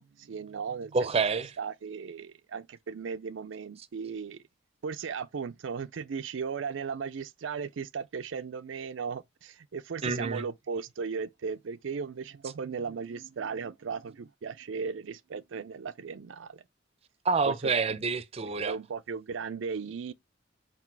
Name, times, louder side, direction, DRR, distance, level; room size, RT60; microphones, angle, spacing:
voice 1, 0.0-1.1 1.6-4.4 4.8-16.6 17.5-17.7 18.4-20.1, right 5 dB, 80° right, 0.4 m, -36 dB
voice 2, 0.9-1.5 10.0-10.4 17.2-18.8, right 4 dB, 30° right, 0.6 m, -27 dB
6.0 x 4.9 x 4.5 m
head